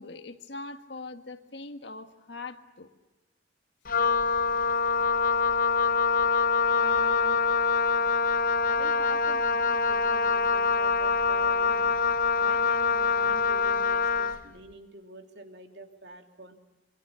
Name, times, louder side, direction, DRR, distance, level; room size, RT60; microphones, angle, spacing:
voice 1, 0.0-2.9, left 3 dB, 70° left, 7 dB, 1.7 m, -41 dB
Wind instrument woodwind instrument, 3.9-14.4, left 5 dB, 45° left, 0.7 m, -25 dB
voice 2, 6.7-7.5 8.6-11.9 12.4-16.5, right 2 dB, 70° right, 4 dB, 2.8 m, -45 dB
26.0 x 24.0 x 7.0 m, 1.1 s
head